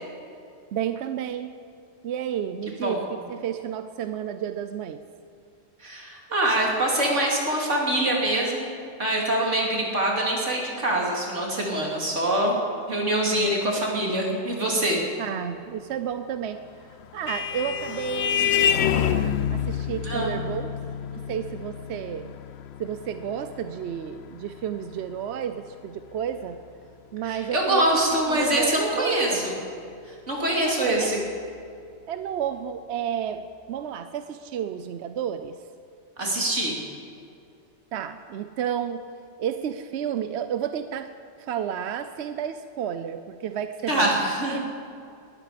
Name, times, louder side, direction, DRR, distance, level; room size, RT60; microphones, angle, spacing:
voice 1, 0.7-1.5 2.0-5.0 15.2-16.6 17.1-20.7 21.1-22.3 22.8-26.6 27.1-27.9 28.3-29.5 30.6-31.1 32.1-35.6 37.9-39.0 39.4-41.1 41.4-44.1 44.4-44.6, right 9 dB, 70° right, 10 dB, 0.9 m, -31 dB
voice 2, 5.8-8.7 9.0-12.6 12.9-15.0 20.0-20.4 27.2-29.5 30.0-31.2 36.2-36.8 43.9-44.6, right 1 dB, 90° right, -2 dB, 3.3 m, -24 dB
Vehicle horn car horn honking, 16.6-25.6, left 9 dB, 70° left, 0.9 m, -28 dB
19.5 x 13.0 x 5.1 m, 2.4 s
omnidirectional pair, 1.2 m